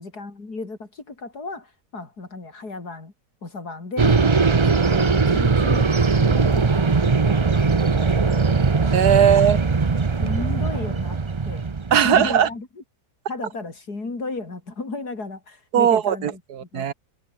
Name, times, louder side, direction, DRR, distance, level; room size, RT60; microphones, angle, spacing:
voice 1, 0.0-3.1 3.4-4.2 4.6-8.7 9.1-9.2 10.2-11.2 11.4-12.7 13.3-16.4 16.7-16.9, left 3 dB, 80° left, 4.8 m, -34 dB
sound 1, 4.0-12.3, right 4 dB, 30° right, 0.6 m, -20 dB
voice 2, 8.9-9.6 11.9-12.5 15.7-16.9, right 9 dB, 80° right, 1.7 m, -18 dB
omnidirectional pair, 1.7 m